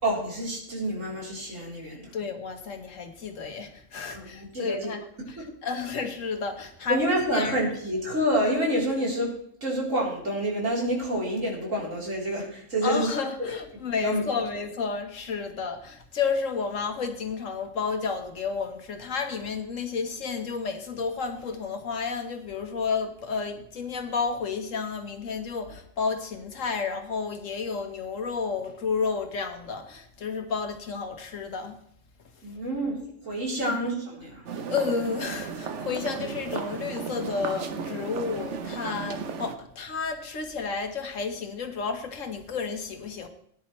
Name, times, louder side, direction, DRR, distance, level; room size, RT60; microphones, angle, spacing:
voice 1, 0.0-2.1 4.1-4.9 5.4-5.5 6.9-9.3 9.6-13.2 14.0-14.2 32.4-34.4, equal, 85° right, -3 dB, 4.2 m, -28 dB
voice 2, 2.1-7.0 7.3-7.7 12.8-31.7 33.7-33.8 34.7-43.3, left 5 dB, 85° left, 6 dB, 1.7 m, -31 dB
sound 1, 34.5-39.6, right 6 dB, 70° right, 1.2 m, -35 dB
18.5 x 10.0 x 3.2 m, 0.66 s
omnidirectional pair, 1.3 m